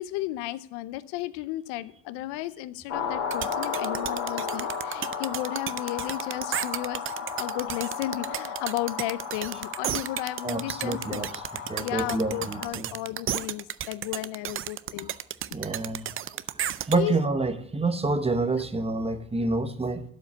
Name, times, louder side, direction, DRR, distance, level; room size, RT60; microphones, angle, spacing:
voice 1, 0.0-11.2 11.5-15.1 16.9-17.2 18.5-18.6, left 16 dB, 80° left, 16 dB, 0.8 m, -34 dB
sound 1, 2.9-12.7, left 6 dB, 35° left, 3.4 m, -34 dB
sound 2, 3.3-17.0, right 11 dB, 35° right, 0.4 m, -33 dB
voice 2, 10.4-11.3 11.7-12.9 15.5-16.1 16.9-20.0, right 3 dB, 15° right, 10 dB, 1.0 m, -28 dB
12.0 x 5.3 x 8.3 m, 0.63 s
cardioid pair, 115°, 40 cm